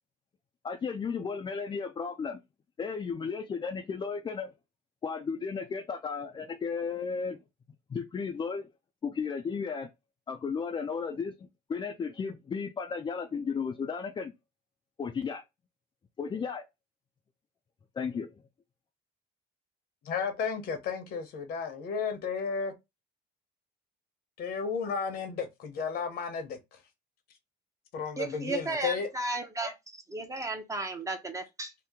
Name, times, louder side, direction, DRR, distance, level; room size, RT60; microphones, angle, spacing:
voice 1, 0.6-2.4 2.8-4.5 5.0-7.4 7.9-8.7 9.0-9.9 10.3-14.3 15.0-15.4 16.2-16.6 18.0-18.3, left 5 dB, 30° left, 0.4 m, -34 dB
voice 2, 20.0-22.7 24.4-26.8 27.9-29.1, left 5 dB, 65° left, 0.9 m, -33 dB
voice 3, 28.2-29.7 30.1-31.7, right 2 dB, 20° right, 0.7 m, -34 dB
2.8 x 2.1 x 3.5 m
cardioid pair, 110°, 17 cm